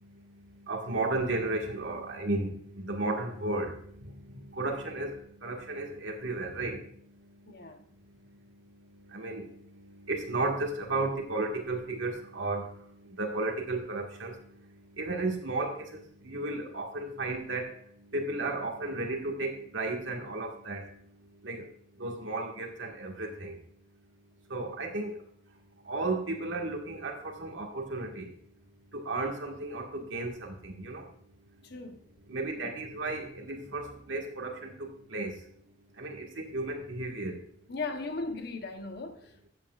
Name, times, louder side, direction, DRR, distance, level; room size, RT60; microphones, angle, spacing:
voice 1, 0.6-6.9 9.1-14.4 15.0-17.7 18.1-20.9 21.4-21.7 22.0-23.6 24.5-25.2 25.9-28.3 28.9-31.0 32.3-35.3 36.0-37.4, right 2 dB, 90° right, 1.7 m, -34 dB
voice 2, 7.5-7.8 31.6-32.0 37.7-39.5, left 3 dB, 60° left, 1.0 m, -37 dB
13.0 x 8.4 x 2.4 m
head